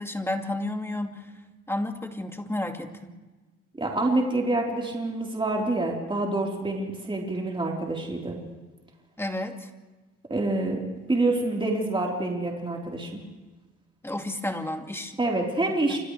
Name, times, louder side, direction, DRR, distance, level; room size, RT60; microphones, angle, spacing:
voice 1, 0.0-1.3 1.7-3.1 9.2-9.7 14.0-15.2 15.7-16.0, left 1 dB, 10° left, 4 dB, 2.4 m, -32 dB
voice 2, 3.8-8.4 10.3-10.8 11.1-13.2 15.2-16.0, right 2 dB, 15° right, -2 dB, 4.1 m, -27 dB
29.0 x 26.5 x 3.4 m, 1.2 s
cardioid pair, 90°, 30 cm